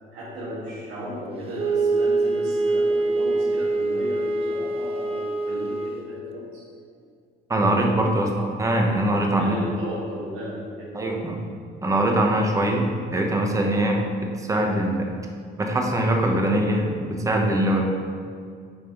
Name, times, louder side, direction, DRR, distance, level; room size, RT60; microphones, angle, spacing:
voice 1, 0.1-7.0 9.3-11.1, equal, 85° right, -10 dB, 1.8 m, -35 dB
Wind instrument woodwind instrument, 1.5-6.0, right 3 dB, 35° right, 0.7 m, -24 dB
voice 2, 7.5-9.6 10.9-11.4 11.8-15.1 15.6-17.8, right 1 dB, 20° right, 1 dB, 1.0 m, -22 dB
8.9 x 4.3 x 3.9 m, 2.1 s
cardioid pair, 110°, 17 cm